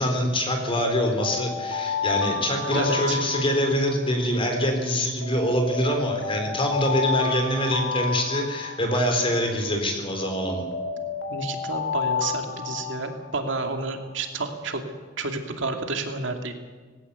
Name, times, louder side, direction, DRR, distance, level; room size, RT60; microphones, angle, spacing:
voice 1, 0.0-10.6, equal, 30° left, 4 dB, 4.1 m, -25 dB
Alarm, 0.5-4.7 5.2-9.7 10.2-14.0, left 5 dB, 80° left, 3.2 m, -31 dB
voice 2, 2.7-3.2 11.3-14.8 15.2-16.6, right 3 dB, 70° right, 5 dB, 2.4 m, -30 dB
19.5 x 17.0 x 8.4 m, 1.4 s
head